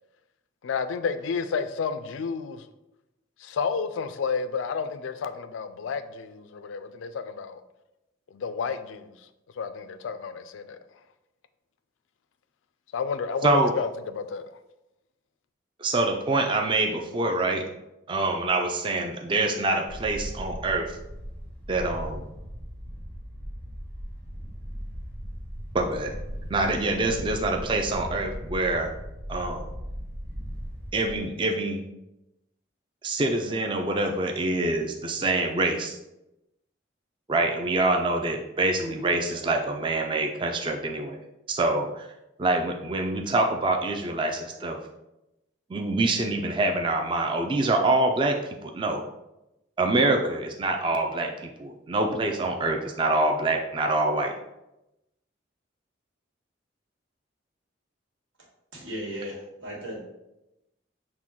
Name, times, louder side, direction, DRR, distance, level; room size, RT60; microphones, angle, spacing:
voice 1, 0.6-2.7 3.4-7.6 8.3-9.2 9.6-10.8 12.9-14.6, left 5 dB, 85° left, 11 dB, 0.3 m, -31 dB
voice 2, 15.8-17.6 18.1-21.0 21.7-22.2 25.7-26.1 26.5-28.9 29.3-29.7 30.9-31.8 33.0-36.0 37.3-41.2 41.5-42.1 42.4-44.8 45.7-49.0 49.8-54.3, right 2 dB, 25° right, 2 dB, 0.3 m, -25 dB
Wind, 19.9-31.2, equal, 50° right, 1.3 m, -38 dB
voice 3, 58.7-60.0, equal, 90° right, -3 dB, 1.4 m, -36 dB
6.0 x 2.2 x 3.6 m, 0.92 s
head